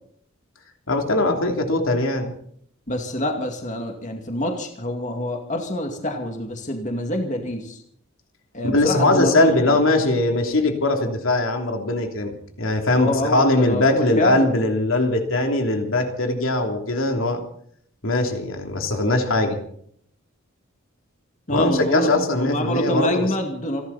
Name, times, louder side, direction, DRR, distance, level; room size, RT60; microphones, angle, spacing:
voice 1, 0.9-2.3 8.6-17.4 18.0-19.6 21.5-23.3, left 2 dB, 75° left, 3 dB, 3.2 m, -21 dB
voice 2, 2.9-7.8 8.5-9.8 12.9-14.5 21.5-22.1 22.3-23.8, left 1 dB, 35° left, 3 dB, 2.3 m, -26 dB
29.0 x 12.0 x 4.2 m, 0.64 s
head